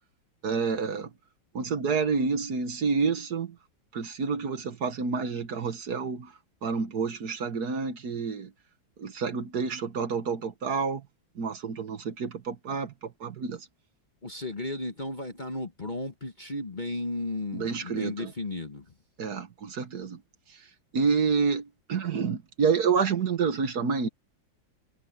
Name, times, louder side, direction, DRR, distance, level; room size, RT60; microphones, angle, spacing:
voice 1, 0.4-1.1 1.5-3.6 3.9-6.3 6.6-8.5 9.0-11.0 11.4-13.7 17.5-18.3 19.2-20.2 20.5-20.7 20.9-24.1, right 5 dB, 55° right, 1.7 m, -29 dB
voice 2, 14.2-18.9, left 2 dB, 25° left, 1.3 m, -34 dB
omnidirectional pair, 2.1 m